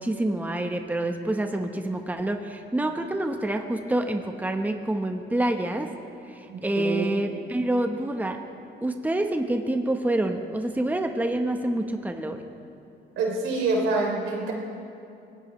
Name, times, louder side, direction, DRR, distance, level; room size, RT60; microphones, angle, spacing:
voice 1, 0.0-5.9 6.2-8.4 8.8-12.4, right 1 dB, 10° right, 5 dB, 1.1 m, -27 dB
voice 2, 6.5-7.2 13.2-14.5, right 3 dB, 85° right, -1 dB, 3.4 m, -26 dB
24.0 x 18.0 x 3.2 m, 2.6 s
cardioid pair, 90°, 20 cm